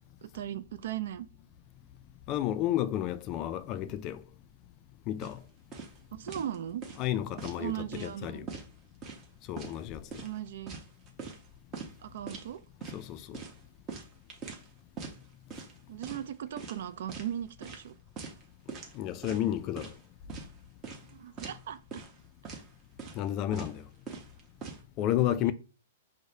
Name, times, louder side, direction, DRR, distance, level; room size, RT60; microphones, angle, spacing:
voice 1, 0.2-1.3 6.1-6.8 7.6-8.5 10.2-10.8 12.0-12.6 15.9-17.9 21.1-22.0, right 11 dB, 70° right, 0.4 m, -38 dB
voice 2, 2.3-4.2 5.1-5.4 7.0-8.5 9.5-10.0 12.9-13.4 18.9-19.9 23.1-23.8 25.0-25.5, left 12 dB, 35° left, 0.3 m, -31 dB
sound 1, 5.2-5.4 5.7-6.0 6.3-6.6 6.8-7.6 7.9-8.2 8.5-9.3 9.6-9.8 10.1-11.5 11.7-11.9 12.3-12.5 12.8-13.0 13.3-14.7 15.0-15.2 15.5-15.8 16.0-16.3 16.6-17.3 17.6-17.8 18.2-18.4 18.7-19.0 19.2-20.0 20.3-20.5 20.8-21.1 21.4-21.6 21.9-22.2 22.4-22.7 23.0-23.3 23.5-23.8 24.1-24.8, right 4 dB, 30° right, 0.9 m, -42 dB
4.6 x 2.1 x 2.6 m
hypercardioid pair, 130°, 0 cm